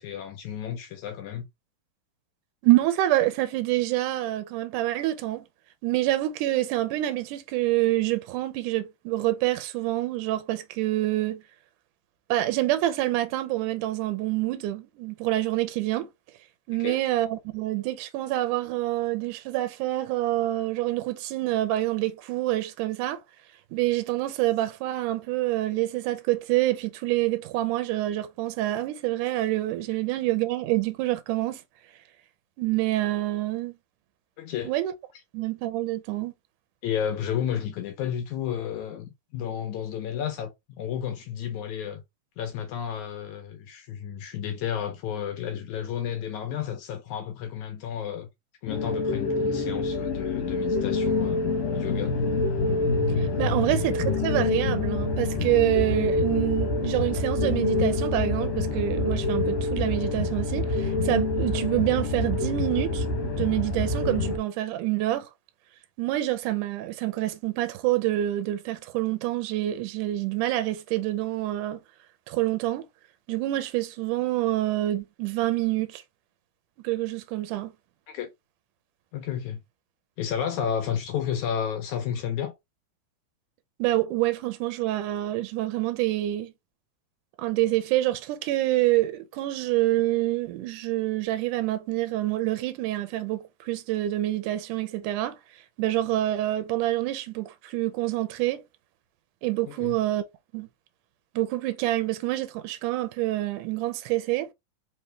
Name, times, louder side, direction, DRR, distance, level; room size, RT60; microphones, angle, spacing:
voice 1, 0.0-1.5 16.8-17.0 34.4-34.7 36.8-42.0 42.4-48.3 48.6-52.2 78.1-78.3 79.1-79.6 80.2-82.5 99.7-100.0, left 9 dB, 75° left, 1.8 m, -32 dB
voice 2, 2.6-5.5 5.8-11.4 12.3-16.1 16.7-23.2 23.7-31.6 32.6-33.7 34.7-34.9 35.3-36.3 53.2-65.3 66.0-71.8 72.3-72.8 73.3-76.0 76.8-77.7 83.8-86.5 87.4-95.4 95.8-98.6 99.4-100.2 100.5-100.7 101.4-104.5, right 16 dB, 75° right, 2.1 m, -27 dB
sound 1, 48.7-64.4, left 2 dB, 55° left, 2.3 m, -26 dB
5.0 x 3.2 x 3.2 m
omnidirectional pair, 4.0 m